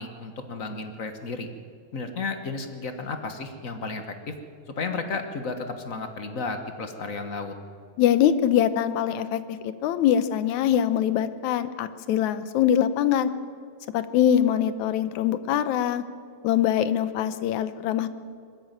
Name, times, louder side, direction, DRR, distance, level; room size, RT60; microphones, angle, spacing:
voice 1, 0.0-1.5 1.9-4.3 4.7-7.5, left 3 dB, 45° left, 7 dB, 1.1 m, -33 dB
voice 2, 8.0-13.3 13.9-16.0 16.4-18.1, left 10 dB, 85° left, 12 dB, 2.2 m, -23 dB
21.0 x 14.0 x 9.2 m, 2.2 s
omnidirectional pair, 3.3 m